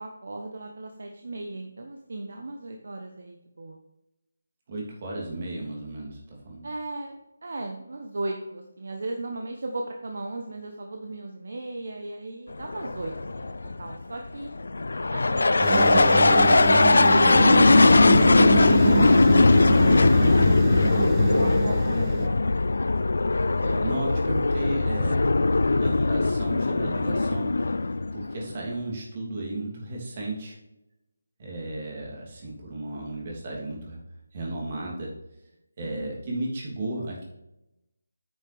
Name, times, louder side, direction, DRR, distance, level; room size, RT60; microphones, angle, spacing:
voice 1, 0.0-3.8 6.6-14.5 15.1-16.8 17.1-18.1 18.6-20.5 21.2-22.5 35.8-36.3, right 2 dB, 60° right, 3 dB, 1.0 m, -36 dB
voice 2, 4.7-6.7 23.6-27.7 28.1-30.6 31.4-34.0 34.3-35.1 35.8-37.2, right 2 dB, 35° right, -2 dB, 2.9 m, -34 dB
sound 1, 12.5-28.5, left 3 dB, 65° left, 0.3 m, -20 dB
sound 2, 15.6-22.3, right 9 dB, 20° right, 0.4 m, -29 dB
9.0 x 6.6 x 3.4 m, 0.91 s
figure-of-eight pair, 155°, 0 cm